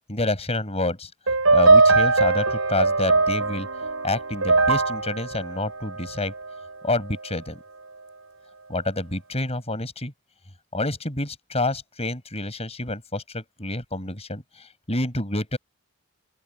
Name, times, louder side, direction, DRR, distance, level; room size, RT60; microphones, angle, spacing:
voice 1, 0.1-1.1 1.5-3.7 4.0-6.3 6.8-7.6 8.7-10.1 10.7-15.6, left 2 dB, 30° left, 7.4 m, -28 dB
sound 1, 1.3-6.6, right 3 dB, 80° right, 6.5 m, -20 dB
open air
head